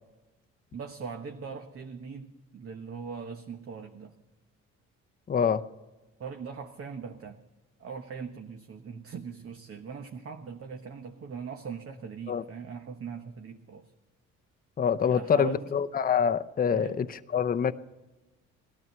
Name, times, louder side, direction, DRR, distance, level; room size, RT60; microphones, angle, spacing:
voice 1, 0.7-4.2 6.2-7.4 7.8-13.9 15.1-15.6 16.7-17.0, right 5 dB, 50° right, 4 dB, 1.1 m, -40 dB
voice 2, 5.3-5.6 12.3-12.4 14.8-17.7, left 7 dB, 30° left, 9 dB, 0.7 m, -26 dB
17.5 x 12.5 x 6.8 m, 1.1 s
cardioid pair, 90°, 30 cm